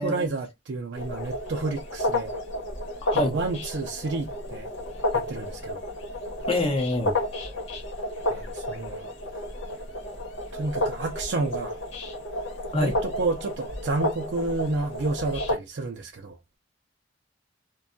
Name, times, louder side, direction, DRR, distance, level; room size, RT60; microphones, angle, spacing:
voice 1, 0.0-2.3 3.1-4.7 5.1-5.8 8.3-9.1 10.5-11.8 12.7-16.4, right 3 dB, 65° right, 0.4 m, -30 dB
sound 1, 1.0-15.6, left 1 dB, 85° left, 1.0 m, -31 dB
voice 2, 3.0-3.3 6.5-7.1 12.7-12.9, left 1 dB, 30° left, 0.6 m, -26 dB
2.6 x 2.2 x 2.5 m
head